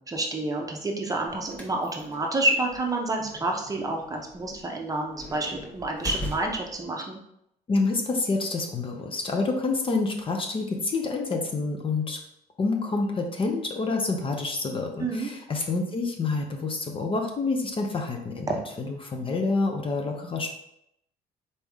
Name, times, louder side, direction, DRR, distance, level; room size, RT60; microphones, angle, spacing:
voice 1, 0.1-7.2 15.0-15.3 18.5-18.6, right 2 dB, 20° right, 1 dB, 0.8 m, -29 dB
sound 1, 1.3-6.8, equal, 10° left, 1.0 m, -40 dB
voice 2, 7.7-12.2 12.6-18.5 18.8-20.5, left 3 dB, 30° left, 2 dB, 0.7 m, -28 dB
4.2 x 3.4 x 3.5 m, 0.77 s
cardioid pair, 110°, 17 cm